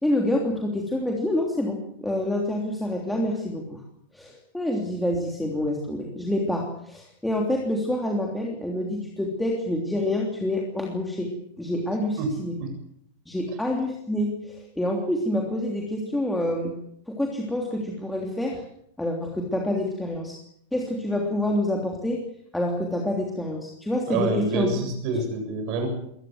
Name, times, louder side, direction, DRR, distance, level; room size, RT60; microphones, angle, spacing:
voice 1, 0.0-3.8 4.1-11.3 11.6-12.6 13.3-16.7 17.1-18.6 19.0-20.4 20.7-22.2 22.5-24.7 25.1-25.2, left 1 dB, 5° left, -1 dB, 3.2 m, -27 dB
voice 2, 12.2-12.7 24.1-25.9, right 3 dB, 40° right, 5 dB, 7.8 m, -27 dB
22.0 x 19.5 x 7.9 m, 0.73 s
supercardioid pair, 160°, 0 cm